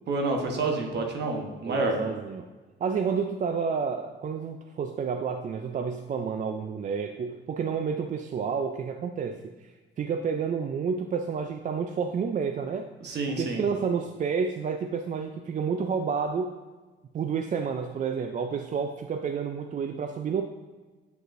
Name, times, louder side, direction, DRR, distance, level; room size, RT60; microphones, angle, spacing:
voice 1, 0.1-2.0 13.0-13.6, right 3 dB, 60° right, 2 dB, 1.1 m, -28 dB
voice 2, 1.7-2.5 2.8-9.7 10.0-12.9 13.4-16.5 17.1-20.4, right 6 dB, 40° right, 6 dB, 0.4 m, -30 dB
8.0 x 5.0 x 2.5 m, 1.3 s
cardioid pair, 90°, 20 cm